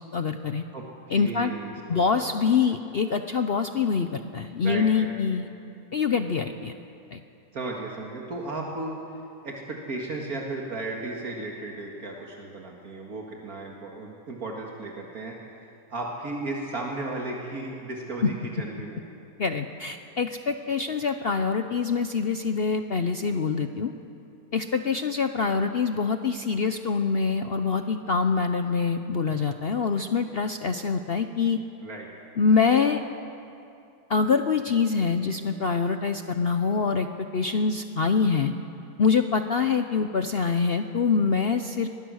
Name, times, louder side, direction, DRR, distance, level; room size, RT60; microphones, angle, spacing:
voice 1, 0.1-0.6 1.1-1.5 1.9-5.5 5.9-6.7 7.1-7.2 18.2-18.3 19.4-23.9 24.5-31.6 32.4-33.0 34.1-37.1 37.3-38.5 39.0-41.9, left 5 dB, 50° left, 7 dB, 0.8 m, -25 dB
voice 2, 1.1-2.2 4.6-5.1 7.5-9.0 9.4-15.3 15.9-19.0 31.8-32.1, right 2 dB, 65° right, -1 dB, 2.3 m, -35 dB
23.0 x 20.5 x 6.4 m, 2.6 s
omnidirectional pair, 1.6 m